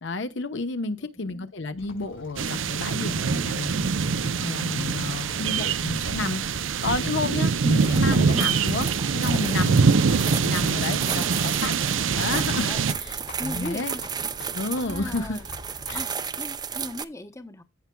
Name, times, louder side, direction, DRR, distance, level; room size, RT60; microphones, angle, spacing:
voice 1, 0.0-9.9 10.4-11.7 12.1-12.7 13.0-13.1 13.4-13.9 14.5-15.4 15.9-16.0, left 3 dB, 65° left, 1.0 m, -31 dB
voice 2, 0.7-1.1 4.7-5.5 11.1-11.3 12.6-12.8 13.4-14.0 14.8-15.5 15.9-17.6, left 1 dB, 15° left, 0.8 m, -38 dB
Livestock farm animals working animals, 1.8-16.2, left 1 dB, 85° left, 4.2 m, -45 dB
sound 1, 2.4-12.9, right 5 dB, 70° right, 0.6 m, -24 dB
sound 2, 7.8-17.1, right 6 dB, 20° right, 0.5 m, -34 dB
15.5 x 5.8 x 2.3 m
head